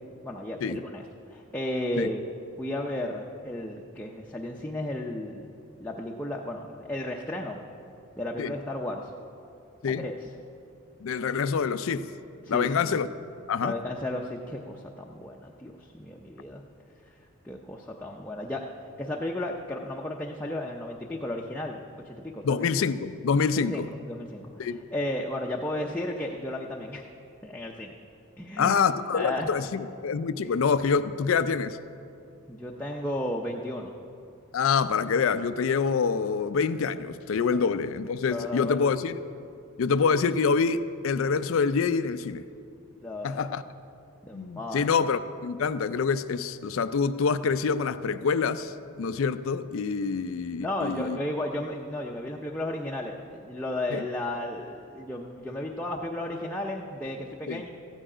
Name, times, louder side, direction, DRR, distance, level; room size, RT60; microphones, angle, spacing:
voice 1, 0.2-1.0 1.3-2.2 2.6-5.5 5.8-7.6 8.2-9.1 9.8-10.2 12.4-12.9 13.6-16.6 17.0-17.2 17.4-22.6 23.5-27.0 27.4-27.9 28.4-29.5 32.5-33.9 37.5-37.6 38.3-38.9 43.0-43.5 44.2-44.9 50.6-57.7, left 1 dB, 10° left, -1 dB, 0.6 m, -34 dB
voice 2, 11.0-12.1 12.5-13.1 13.5-13.8 22.4-23.9 24.6-24.8 28.6-31.8 34.5-39.2 39.8-42.4 43.2-43.6 44.3-51.2 53.9-54.0 57.5-57.6, left 5 dB, 75° left, 12 dB, 0.4 m, -26 dB
14.5 x 10.0 x 4.9 m, 2.6 s
head